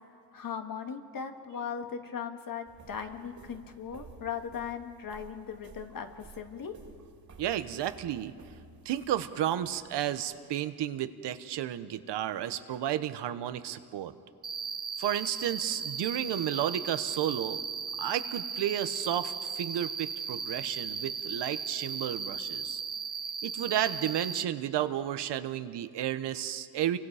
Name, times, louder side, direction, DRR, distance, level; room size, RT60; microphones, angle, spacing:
voice 1, 0.3-6.7, left 7 dB, 55° left, 5 dB, 2.0 m, -38 dB
sound 1, 2.7-10.4, right 3 dB, 45° right, 2.7 m, -54 dB
voice 2, 7.4-8.3 8.8-14.1 15.0-17.6 18.0-22.8 23.4-27.0, right 11 dB, 90° right, 11 dB, 1.1 m, -32 dB
Cricket, 14.4-24.4, right 5 dB, 25° right, 0.6 m, -36 dB
29.0 x 24.5 x 4.9 m, 2.3 s
cardioid pair, 95°, 40 cm